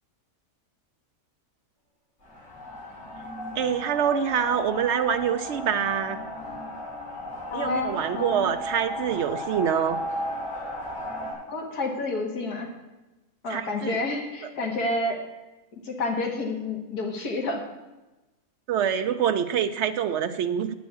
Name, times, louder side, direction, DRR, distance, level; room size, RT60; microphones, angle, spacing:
sound 1, 2.2-11.3, equal, 45° left, 4.5 m, -35 dB
voice 1, 3.6-6.2 7.5-10.0 13.5-14.0 18.7-20.7, right 8 dB, 75° right, 10 dB, 0.6 m, -25 dB
voice 2, 7.5-8.5 11.5-12.7 13.4-15.2 15.8-17.6, left 2 dB, 70° left, 2 dB, 2.0 m, -29 dB
9.3 x 6.2 x 8.3 m, 1.1 s
omnidirectional pair, 1.7 m